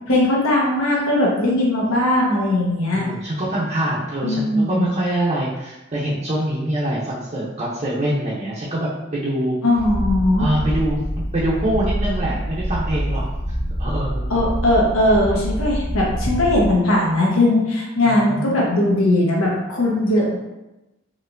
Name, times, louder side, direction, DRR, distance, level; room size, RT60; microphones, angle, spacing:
voice 1, 0.1-3.1 4.2-4.9 9.6-10.5 14.3-20.4, left 1 dB, 80° left, -3 dB, 1.1 m, -19 dB
voice 2, 2.9-9.5 10.4-11.0 11.3-13.2 13.8-14.3 18.1-18.6, right 1 dB, 30° right, -7 dB, 0.7 m, -24 dB
Purr, 9.7-16.7, equal, 90° right, 1.0 m, -26 dB
4.2 x 3.1 x 2.6 m, 0.98 s
head